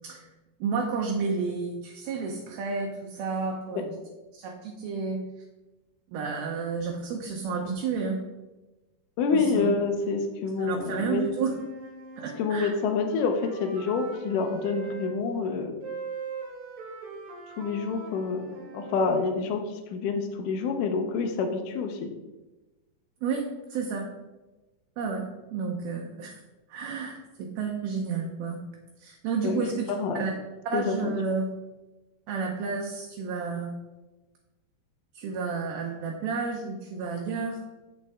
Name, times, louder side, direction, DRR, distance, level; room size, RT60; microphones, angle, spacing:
voice 1, 0.6-4.0 4.3-5.2 6.1-8.2 9.3-9.7 10.6-11.5 12.2-12.7 23.2-24.1 25.0-26.4 26.7-28.6 29.0-29.9 30.2-30.3 30.6-31.5 32.3-33.7 35.1-37.6, right 5 dB, 75° right, 0 dB, 2.5 m, -31 dB
voice 2, 9.2-11.2 12.4-15.7 17.6-22.1 29.4-29.6 29.9-30.2 30.7-31.1, left 4 dB, 80° left, 4 dB, 1.8 m, -27 dB
Wind instrument woodwind instrument, 11.2-15.1 15.8-19.3, right 4 dB, 55° right, 2.4 m, -41 dB
8.1 x 6.8 x 3.6 m, 1.1 s
omnidirectional pair, 4.7 m